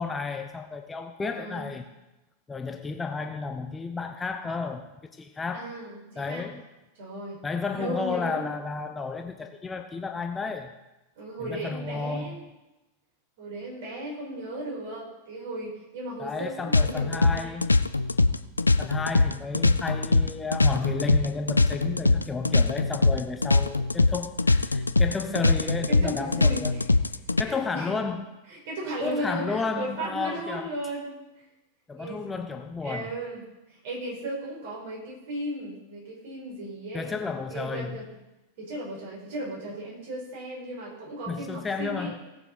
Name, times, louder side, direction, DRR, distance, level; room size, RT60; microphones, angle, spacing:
voice 1, 0.0-1.8 2.5-5.7 6.2-6.6 7.4-10.7 11.4-12.4 16.2-17.7 18.8-26.7 27.4-28.3 29.0-30.7 31.9-33.1 36.9-38.0 41.3-42.2, left 4 dB, 15° left, 6 dB, 0.8 m, -32 dB
voice 2, 1.3-1.7 5.5-6.5 7.0-7.4 7.7-8.5 11.2-12.4 13.4-17.6 25.2-26.9 27.4-28.0 28.5-31.2 31.9-32.3 32.8-33.4 33.7-37.1 37.5-38.0 38.6-42.1, right 1 dB, 55° right, -3 dB, 5.1 m, -36 dB
sound 1, 16.7-27.4, left 3 dB, 80° left, 0.4 m, -22 dB
18.5 x 7.0 x 4.2 m, 1.0 s
figure-of-eight pair, 90°, 0 cm